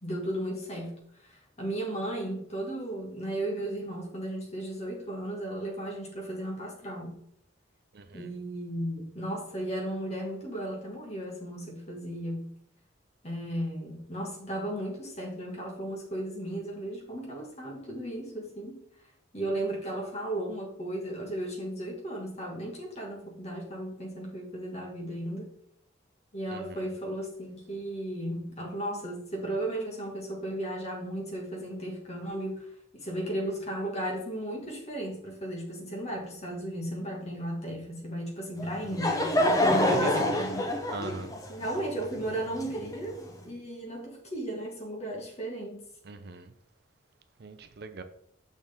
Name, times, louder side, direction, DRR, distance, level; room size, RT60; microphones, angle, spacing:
voice 1, 0.0-7.2 8.1-12.5 13.2-18.8 19.3-25.5 26.3-32.7 32.9-40.6 41.5-45.8, right 1 dB, 30° left, 1.8 m, -35 dB
voice 2, 7.9-8.3 26.5-26.8 39.9-40.4 40.9-41.3 46.1-46.5 47.4-48.0, right 3 dB, 50° right, 0.5 m, -40 dB
Laughter / Crowd, 38.6-43.3, left 1 dB, 15° left, 0.7 m, -27 dB
6.4 x 6.3 x 3.5 m
head